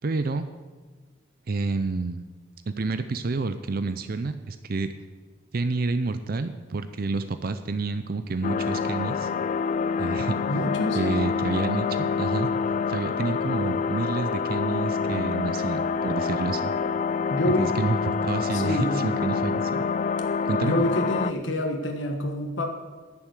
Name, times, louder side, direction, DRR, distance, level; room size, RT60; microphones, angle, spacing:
voice 1, 0.0-0.5 1.5-2.2 2.7-4.9 5.5-9.3 10.0-10.4 10.9-12.5 12.9-16.7 17.6-19.8 20.5-20.7, right 3 dB, 50° right, 11 dB, 0.5 m, -29 dB
sound 1, 8.4-21.3, left 5 dB, 40° left, 0.3 m, -27 dB
voice 2, 10.5-11.0 17.3-17.7 18.5-19.0 20.6-22.7, left 1 dB, 80° left, 3 dB, 1.4 m, -26 dB
11.0 x 7.1 x 8.2 m, 1.4 s
head